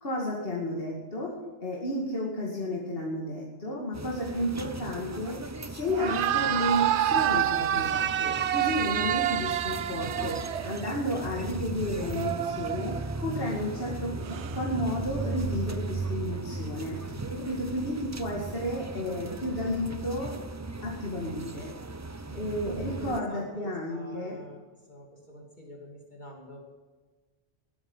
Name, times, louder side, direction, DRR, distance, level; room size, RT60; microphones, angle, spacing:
voice 1, 0.0-1.3 1.6-20.3 20.8-21.7 22.3-24.4, left 1 dB, 55° left, -3 dB, 2.6 m, -32 dB
sound 1, 3.9-23.2, right 3 dB, 25° right, 0.4 m, -37 dB
sound 2, 5.9-11.0 12.0-13.3 14.2-14.6, right 11 dB, 80° right, 0.9 m, -28 dB
voice 2, 22.3-24.6 24.9-26.6, left 1 dB, 40° left, -1 dB, 2.8 m, -45 dB
19.5 x 9.9 x 5.6 m, 1.4 s
omnidirectional pair, 1.1 m